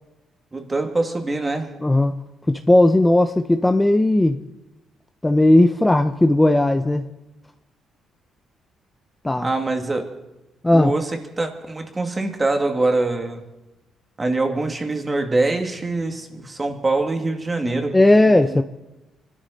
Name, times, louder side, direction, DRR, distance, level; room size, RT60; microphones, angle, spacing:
voice 1, 0.5-1.8 9.4-10.2 10.7-13.4 14.2-18.6, right 2 dB, 25° right, 2.2 m, -24 dB
voice 2, 1.8-2.2 2.5-4.4 5.2-7.1 9.2-9.5 10.6-10.9 17.9-18.6, left 1 dB, 10° left, 0.7 m, -16 dB
26.0 x 12.5 x 4.2 m
cardioid pair, 90°, 0 cm